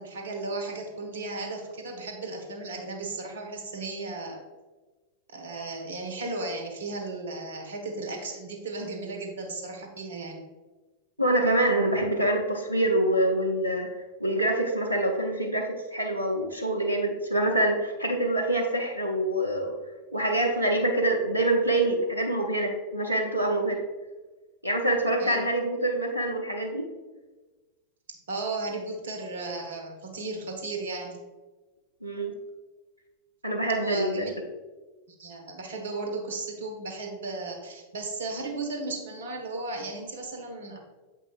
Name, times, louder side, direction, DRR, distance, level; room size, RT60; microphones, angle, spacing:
voice 1, 0.0-4.4 5.3-10.4 25.2-25.4 28.3-31.2 33.8-34.4 35.2-40.8, right 3 dB, 60° right, 3 dB, 1.2 m, -35 dB
voice 2, 11.2-13.9 14.2-19.7 20.1-23.8 24.6-26.9 32.0-32.3 33.4-34.2, right 1 dB, 85° right, 1 dB, 0.6 m, -25 dB
7.4 x 5.4 x 2.4 m, 1.2 s
figure-of-eight pair, 90°, 0 cm